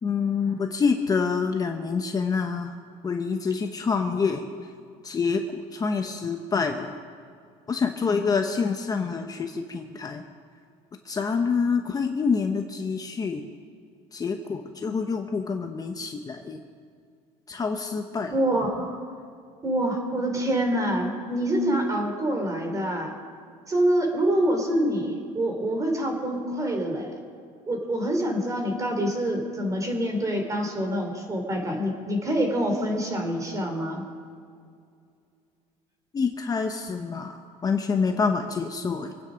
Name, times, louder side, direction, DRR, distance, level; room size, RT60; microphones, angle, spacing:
voice 1, 0.0-2.8 3.0-4.4 5.0-7.0 7.7-10.2 11.0-13.4 14.1-16.6 17.5-18.4 36.1-39.1, left 5 dB, 25° left, 5 dB, 0.9 m, -27 dB
voice 2, 18.3-19.0 19.6-23.1 23.7-27.1 27.7-34.0, right 1 dB, 25° right, 3 dB, 3.4 m, -26 dB
26.0 x 9.3 x 5.2 m, 2.3 s
cardioid pair, 120°, 14 cm